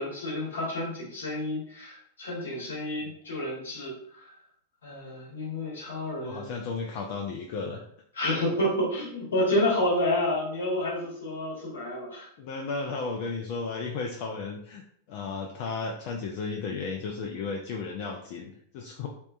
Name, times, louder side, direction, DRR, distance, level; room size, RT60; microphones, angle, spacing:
voice 1, 0.0-4.3 4.8-6.5 8.1-12.3, left 1 dB, 70° left, -3 dB, 0.9 m, -29 dB
voice 2, 6.2-7.9 9.0-9.1 12.4-14.8 15.1-19.1, left 4 dB, 45° left, 0 dB, 0.3 m, -34 dB
2.6 x 2.2 x 2.3 m, 0.66 s
figure-of-eight pair, 90°, 0 cm